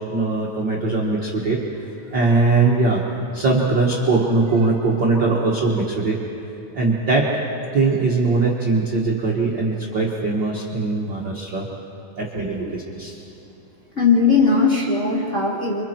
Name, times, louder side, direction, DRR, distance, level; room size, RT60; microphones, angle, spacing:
voice 1, 0.0-3.0 3.3-6.2 6.7-7.3 7.7-11.7 12.2-13.2, right 3 dB, 45° right, -4 dB, 1.6 m, -21 dB
voice 2, 14.0-15.8, left 4 dB, 25° left, -4 dB, 2.0 m, -18 dB
29.0 x 25.0 x 4.5 m, 2.9 s
omnidirectional pair, 4.3 m